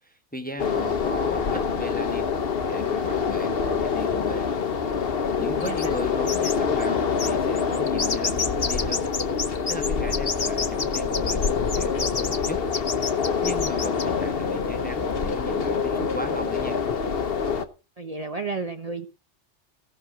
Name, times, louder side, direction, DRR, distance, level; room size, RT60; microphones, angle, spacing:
voice 1, 0.0-2.3 2.7-4.5 5.0-9.1 9.3-12.6 13.2-16.8, left 1 dB, 5° left, 6 dB, 1.3 m, -37 dB
sound 1, 0.6-17.6, left 6 dB, 55° left, 1.2 m, -26 dB
sound 2, 5.6-6.0 6.3-6.6 6.8-6.9 7.2-14.0, left 4 dB, 35° left, 1.0 m, -29 dB
voice 2, 18.0-19.1, right 4 dB, 35° right, 6 dB, 1.0 m, -31 dB
16.0 x 6.6 x 6.2 m, 0.33 s
omnidirectional pair, 1.2 m